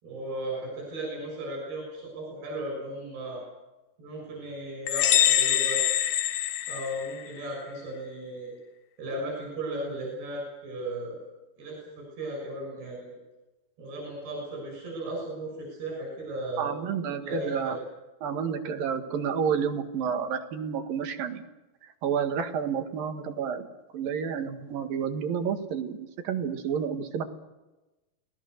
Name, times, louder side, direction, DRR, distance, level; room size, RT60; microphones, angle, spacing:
voice 1, 0.0-3.4 4.0-5.8 6.7-8.5 9.0-11.2 11.6-13.2 13.8-16.8 17.2-17.8, right 1 dB, 90° right, 0 dB, 8.8 m, -36 dB
sound 1, 4.9-7.4, left 11 dB, 70° left, 2.3 m, -24 dB
voice 2, 16.6-17.8 18.2-21.4 22.0-23.7 23.9-26.0 26.2-27.2, right 7 dB, 70° right, 6 dB, 3.4 m, -30 dB
29.0 x 19.5 x 6.7 m, 1.1 s
omnidirectional pair, 4.5 m